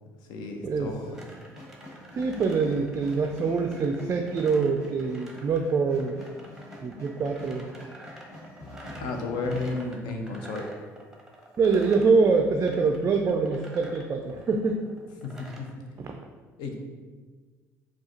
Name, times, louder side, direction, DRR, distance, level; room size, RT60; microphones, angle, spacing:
voice 1, 0.3-1.2 9.0-10.7 15.2-15.7 16.6-16.7, left 3 dB, 60° left, 3 dB, 0.7 m, -33 dB
sound 1, 1.0-9.8, left 1 dB, 80° left, 1.1 m, -47 dB
sound 2, 1.1-15.7, right 1 dB, 5° right, 0.9 m, -49 dB
voice 2, 2.2-6.2 6.8-7.7 11.6-14.8 16.0-16.1, right 4 dB, 35° right, 4 dB, 0.4 m, -24 dB
4.8 x 2.3 x 3.8 m, 1.4 s
figure-of-eight pair, 55°, 9 cm